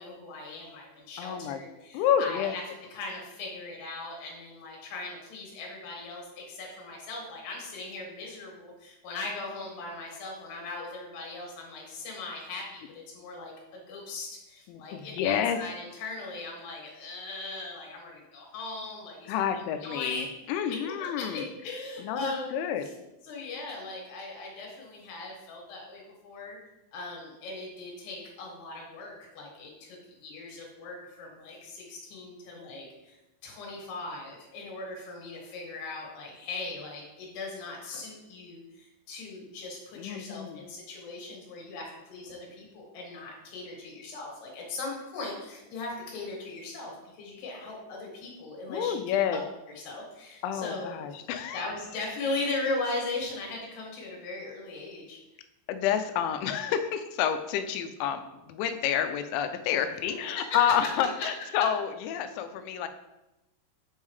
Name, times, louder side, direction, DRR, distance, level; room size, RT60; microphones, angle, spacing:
voice 1, 0.0-2.6 2.9-19.3 19.8-20.3 21.0-22.7 23.2-26.6 26.9-33.2 33.4-49.0 49.3-49.4 49.8-51.0 51.5-55.2 60.4-60.7 61.5-61.6, left 2 dB, 65° left, -2 dB, 3.6 m, -39 dB
voice 2, 1.2-1.6 1.9-2.5 14.7-15.6 19.3-21.5 22.0-22.9 40.0-40.6 48.7-49.4 50.4-51.7 55.7-62.9, left 9 dB, 85° left, 8 dB, 2.9 m, -29 dB
8.0 x 5.5 x 3.2 m, 0.97 s
omnidirectional pair, 5.3 m